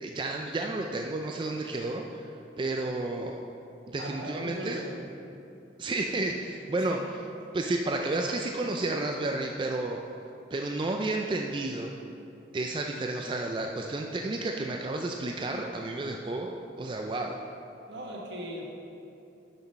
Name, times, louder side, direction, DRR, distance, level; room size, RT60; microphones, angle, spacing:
voice 1, 0.0-2.3 2.6-3.4 3.9-4.8 5.8-7.0 7.5-10.0 10.5-11.9 12.5-17.4, right 2 dB, 30° right, 2 dB, 0.3 m, -31 dB
voice 2, 4.0-5.0 6.7-7.0 17.9-18.6, equal, 85° right, -1 dB, 1.3 m, -38 dB
7.1 x 6.0 x 5.4 m, 2.7 s
head